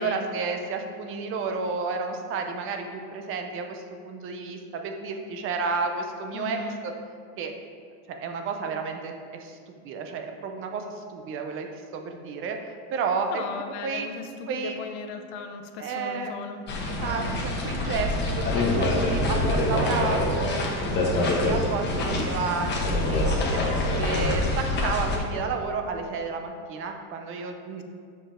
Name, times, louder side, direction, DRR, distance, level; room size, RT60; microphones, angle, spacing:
voice 1, 0.0-6.9 7.4-7.5 8.1-11.7 11.9-13.4 13.8-14.1 14.5-14.8 15.8-16.3 17.0-27.8, right 4 dB, 30° right, 4 dB, 0.6 m, -31 dB
voice 2, 6.3-6.8 13.3-16.6 22.0-22.3, left 5 dB, 50° left, 6 dB, 0.7 m, -37 dB
sound 1, 16.7-25.2, left 2 dB, 25° left, 1.1 m, -25 dB
6.9 x 5.6 x 4.3 m, 2.1 s
supercardioid pair, 145°, 45 cm